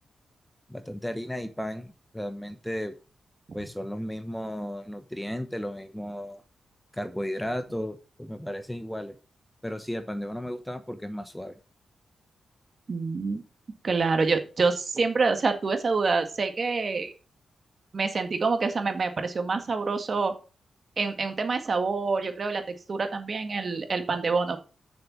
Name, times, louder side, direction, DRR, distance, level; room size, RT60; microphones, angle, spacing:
voice 1, 0.7-2.9 3.5-6.4 6.9-9.2 9.6-11.6, equal, 5° left, 10 dB, 1.0 m, -34 dB
voice 2, 12.9-13.4 13.8-17.1 17.9-20.3 21.0-22.6 22.9-24.6, right 4 dB, 50° right, 7 dB, 1.8 m, -26 dB
6.8 x 6.7 x 6.0 m, 0.34 s
cardioid pair, 80°, 0 cm